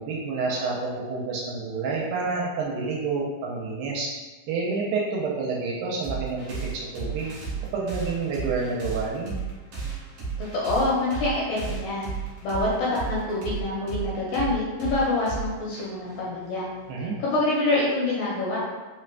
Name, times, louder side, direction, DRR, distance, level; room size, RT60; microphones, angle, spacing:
voice 1, 0.0-4.1 4.5-7.3 7.7-9.4 16.9-17.2, right 4 dB, 80° right, -3 dB, 2.3 m, -29 dB
sound 1, 6.0-17.1, right 6 dB, 60° right, 2.2 m, -34 dB
voice 2, 10.5-12.1 12.4-16.7 17.2-18.6, left 2 dB, 75° left, -6 dB, 2.0 m, -26 dB
5.7 x 2.5 x 2.2 m, 1.3 s
omnidirectional pair, 4.3 m